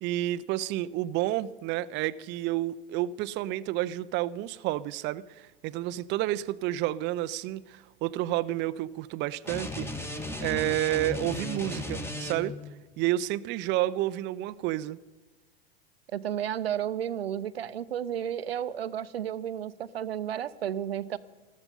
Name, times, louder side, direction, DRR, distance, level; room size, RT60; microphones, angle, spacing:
voice 1, 0.0-9.9 10.4-12.6 13.0-15.0, right 15 dB, 35° right, 0.5 m, -30 dB
sound 1, 9.4-12.7, left 2 dB, 10° left, 1.8 m, -36 dB
voice 2, 16.1-21.2, right 10 dB, 80° right, 0.7 m, -32 dB
14.5 x 13.5 x 5.5 m
hypercardioid pair, 85°, 30 cm